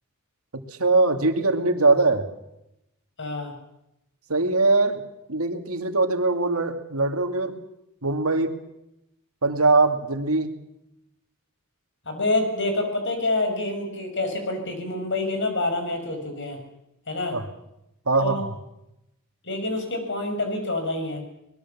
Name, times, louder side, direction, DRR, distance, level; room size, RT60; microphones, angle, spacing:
voice 1, 0.8-2.3 4.3-5.0 5.3-7.6 8.0-8.6 9.4-10.5 17.3-17.4 18.1-18.4, right 3 dB, 80° right, 6 dB, 2.4 m, -21 dB
voice 2, 3.2-3.5 12.0-16.6 17.1-17.4 18.2-18.4 19.4-21.2, left 2 dB, 60° left, 5 dB, 6.7 m, -27 dB
24.0 x 21.0 x 7.3 m, 0.86 s
head